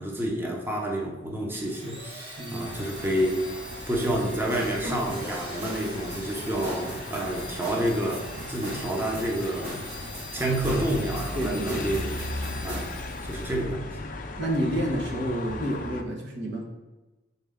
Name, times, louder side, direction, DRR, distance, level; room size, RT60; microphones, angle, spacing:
voice 1, 0.0-3.4 3.9-9.8 10.3-12.9 13.2-14.0, right 1 dB, 10° right, 0 dB, 0.7 m, -29 dB
Domestic sounds home sounds, 1.5-13.6, equal, 30° right, 1.3 m, -43 dB
voice 2, 2.4-2.7 11.3-11.9 14.4-16.6, equal, 85° right, -2 dB, 1.3 m, -29 dB
sound 1, 2.6-16.0, left 2 dB, 50° left, 0.5 m, -38 dB
sound 2, 4.5-12.8, equal, 55° right, 1.9 m, -38 dB
6.6 x 4.1 x 3.6 m, 1.2 s
head